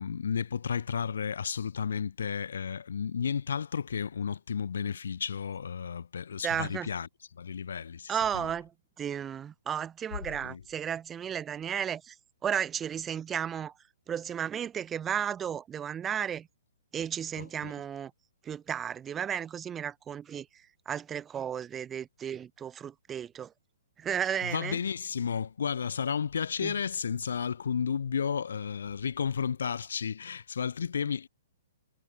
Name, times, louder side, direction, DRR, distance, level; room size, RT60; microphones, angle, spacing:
voice 1, 0.0-7.1 7.3-8.5 10.4-10.6 17.4-17.7 24.4-31.3, left 7 dB, 80° left, 4.8 m, -32 dB
voice 2, 6.4-6.9 8.1-8.7 9.0-12.2 12.4-13.7 14.1-16.5 16.9-18.1 18.4-23.5 24.0-24.8 26.6-26.7, right 8 dB, 15° right, 5.6 m, -34 dB
hypercardioid pair, 160°, 0 cm